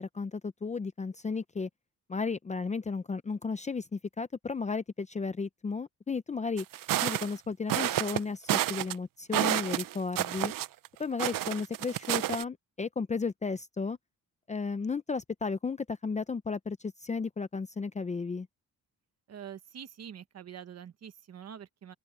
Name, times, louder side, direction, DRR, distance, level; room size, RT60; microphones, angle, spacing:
voice 1, 0.0-1.7 2.1-6.7 7.0-10.5 11.0-14.0 14.5-18.5, left 4 dB, 20° left, 0.5 m, -34 dB
sound 1, 6.6-7.3 7.7-8.2 8.5-8.9 9.3-10.9 11.2-12.4, right 13 dB, 75° right, 0.6 m, -30 dB
voice 2, 19.3-21.9, right 8 dB, 50° right, 1.1 m, -45 dB
open air
wide cardioid pair, 170°, 34 cm